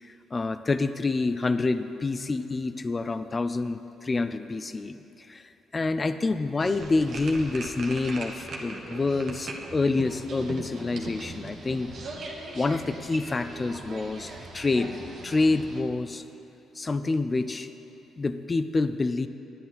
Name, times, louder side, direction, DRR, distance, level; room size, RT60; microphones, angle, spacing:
voice 1, 0.0-5.0 5.3-5.4 5.7-11.9 12.5-14.9 15.2-16.2 16.8-17.7 18.2-19.3, left 3 dB, 30° left, 11 dB, 0.4 m, -27 dB
sound 1, 6.6-15.8, right 3 dB, 60° right, 1.2 m, -40 dB
10.0 x 9.5 x 4.0 m, 3.0 s
cardioid pair, 90°, 0 cm